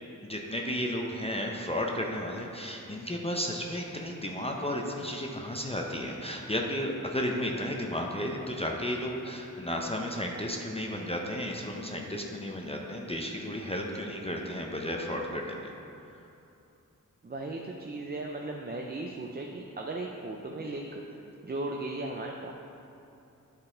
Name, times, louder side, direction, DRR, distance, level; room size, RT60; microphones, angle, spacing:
voice 1, 0.2-15.7, equal, 20° left, 0 dB, 0.6 m, -33 dB
voice 2, 17.2-21.0 21.4-22.5, right 2 dB, 30° right, 0 dB, 0.4 m, -36 dB
9.7 x 4.0 x 3.8 m, 2.8 s
wide cardioid pair, 75°, 33 cm